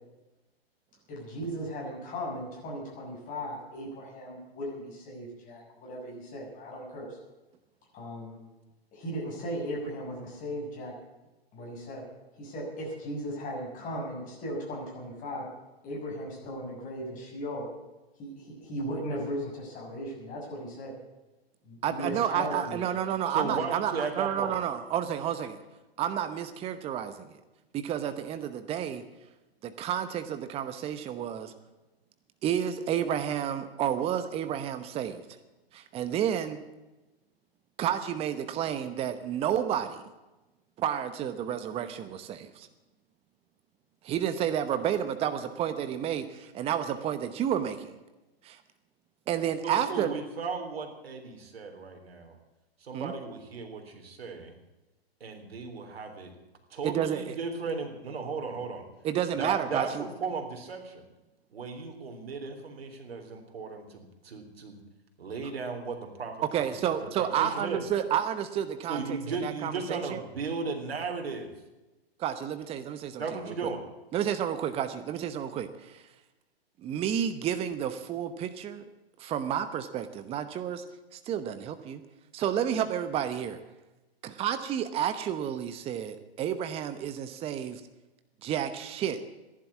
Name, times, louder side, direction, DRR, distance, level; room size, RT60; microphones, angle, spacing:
voice 1, 1.1-7.1 7.9-8.4 8.9-10.9 11.5-12.1 12.3-15.5 15.8-17.7 18.2-21.0 21.6-23.0, equal, 25° left, -2 dB, 7.0 m, -37 dB
voice 2, 21.8-25.6 26.0-27.4 27.7-29.0 29.6-31.5 32.4-35.2 35.7-36.6 37.8-40.0 40.8-42.7 44.0-47.9 48.4-48.6 49.3-50.1 52.9-53.1 56.8-57.4 59.0-60.1 66.5-70.2 72.2-73.2 73.6-73.7 74.1-76.0 76.8-78.8 79.2-80.8 81.1-82.0 82.3-83.6 84.2-87.8 88.4-89.2, right 9 dB, 20° right, 11 dB, 0.9 m, -31 dB
voice 3, 23.3-24.5 49.6-52.4 52.8-54.5 55.2-56.3 56.7-58.8 59.4-61.0 61.5-64.8 65.2-67.8 68.9-71.5 73.2-73.8, right 4 dB, 70° right, 5 dB, 3.6 m, -36 dB
14.5 x 11.5 x 8.4 m, 1.0 s
hypercardioid pair, 125°, 31 cm